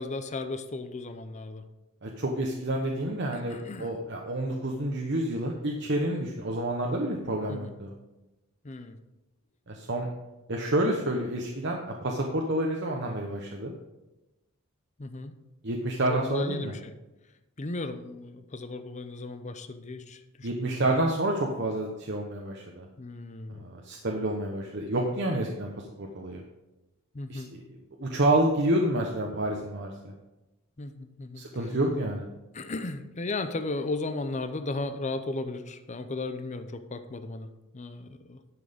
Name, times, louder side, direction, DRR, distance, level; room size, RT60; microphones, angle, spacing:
voice 1, 0.0-1.6 3.5-3.9 7.5-7.7 8.6-9.0 15.0-15.3 16.1-16.9 17.6-20.9 23.0-23.7 27.1-27.5 30.8-31.7 32.5-37.5 37.7-38.4, left 2 dB, 35° left, 9 dB, 0.6 m, -35 dB
voice 2, 2.0-7.9 9.7-10.1 10.5-13.7 15.6-16.7 20.4-22.8 23.5-26.4 27.3-27.6 28.0-30.1 31.4-32.3, right 1 dB, 55° right, 1 dB, 1.0 m, -29 dB
11.0 x 6.3 x 5.1 m, 1.0 s
head